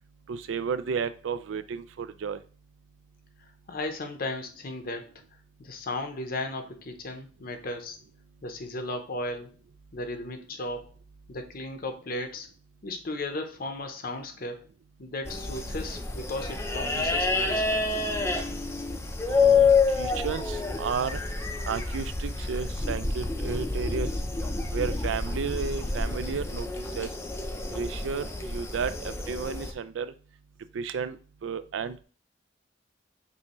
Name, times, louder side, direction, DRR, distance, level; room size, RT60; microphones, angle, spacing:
voice 1, 0.3-2.4 19.3-21.2 21.7-24.1 24.7-27.1 27.7-30.1 30.7-32.0, right 6 dB, 85° right, 13 dB, 0.4 m, -33 dB
voice 2, 3.4-5.1 5.6-8.0 8.4-9.5 9.9-10.9 11.3-12.5 12.8-14.6 15.0-17.9, left 2 dB, 50° left, 6 dB, 0.7 m, -35 dB
sound 1, 15.2-29.7, left 4 dB, 15° left, 0.4 m, -28 dB
5.5 x 2.6 x 3.0 m, 0.39 s
head